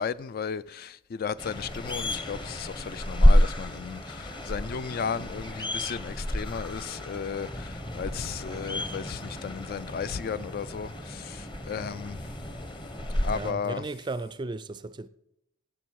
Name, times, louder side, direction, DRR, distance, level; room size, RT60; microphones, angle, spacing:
voice 1, 0.0-12.2 13.2-13.8, left 6 dB, 45° left, 0.3 m, -34 dB
sound 1, 1.4-13.5, equal, 25° left, 1.0 m, -29 dB
voice 2, 13.3-15.1, right 3 dB, 25° right, 0.4 m, -35 dB
16.5 x 8.1 x 4.7 m
head